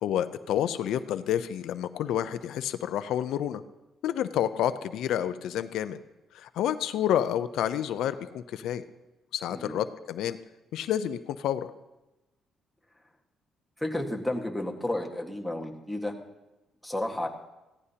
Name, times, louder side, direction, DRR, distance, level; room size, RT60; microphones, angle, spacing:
voice 1, 0.0-3.6 4.0-6.0 6.3-8.8 9.3-10.4 10.7-11.7, left 10 dB, 85° left, 12 dB, 0.5 m, -29 dB
voice 2, 9.5-9.8 13.8-16.1 16.8-17.3, left 1 dB, ahead, 1 dB, 1.6 m, -32 dB
15.5 x 15.0 x 2.8 m, 1.0 s
cardioid pair, 90°, 0 cm